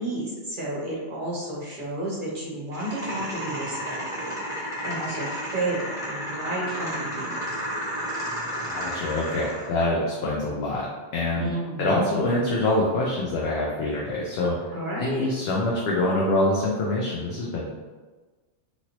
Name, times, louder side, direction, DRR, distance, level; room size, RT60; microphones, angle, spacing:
voice 1, 0.0-7.4 11.3-12.0 14.7-15.3, right 1 dB, 50° right, -5 dB, 0.8 m, -32 dB
sound 1, 2.7-9.7, equal, 5° right, 0.9 m, -32 dB
voice 2, 8.6-11.5 11.8-14.7 15.0-17.8, left 2 dB, 65° left, -4 dB, 0.8 m, -25 dB
3.0 x 2.6 x 2.9 m, 1.3 s
omnidirectional pair, 1.2 m